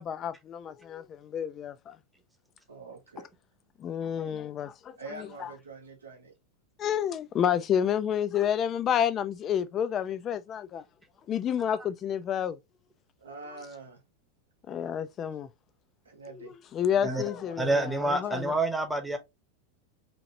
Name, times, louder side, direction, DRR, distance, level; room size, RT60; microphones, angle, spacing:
voice 1, 0.0-2.0 3.8-5.5 6.8-10.8 11.3-12.6 14.7-15.5 16.4-18.5, left 9 dB, 35° left, 0.4 m, -30 dB
voice 2, 2.7-3.3 5.0-6.3 13.2-14.0 15.3-15.4 16.0-16.6 16.9-17.6 18.1-18.2, right 3 dB, 80° right, 0.8 m, -44 dB
voice 3, 17.6-19.2, right 2 dB, 5° right, 0.8 m, -27 dB
2.9 x 2.8 x 2.6 m
figure-of-eight pair, 90°, 0 cm